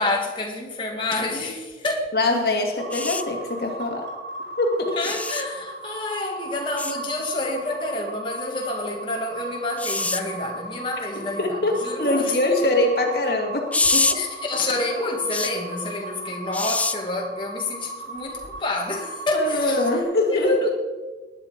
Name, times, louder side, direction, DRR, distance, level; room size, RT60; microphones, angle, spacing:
voice 1, 0.0-2.1 5.0-12.3 14.1-20.0 20.3-20.7, left 2 dB, 30° left, 0 dB, 2.3 m, -28 dB
voice 2, 2.1-4.1 4.6-5.0 11.0-14.2 16.4-16.5 19.3-20.5, left 2 dB, 60° left, 2 dB, 2.4 m, -23 dB
sound 1, 2.8-20.0, right 2 dB, 85° right, 4.2 m, -37 dB
sound 2, 2.9-3.2 5.0-5.4 6.8-6.9 9.8-10.2 13.7-14.2 15.3-15.5 16.5-16.9 18.4-18.6, left 3 dB, 10° left, 0.4 m, -24 dB
20.0 x 10.5 x 5.2 m, 1.3 s
head